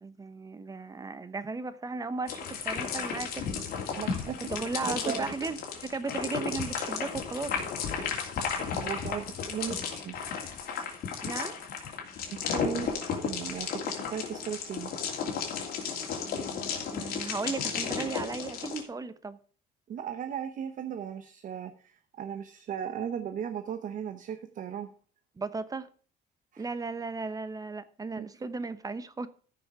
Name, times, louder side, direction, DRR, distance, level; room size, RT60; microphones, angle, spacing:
voice 1, 0.0-3.5 4.5-7.6 11.2-11.6 16.3-19.4 25.4-25.9 26.6-29.3, right 3 dB, 20° right, 0.9 m, -36 dB
sound 1, 2.3-18.8, left 6 dB, 65° left, 2.9 m, -34 dB
voice 2, 4.0-4.4 4.9-5.3 8.6-10.2 12.3-12.9 13.2-14.9 19.9-24.9 26.5-26.6 28.2-28.3, right 8 dB, 50° right, 1.0 m, -37 dB
13.5 x 6.2 x 4.9 m
cardioid pair, 110°, 17 cm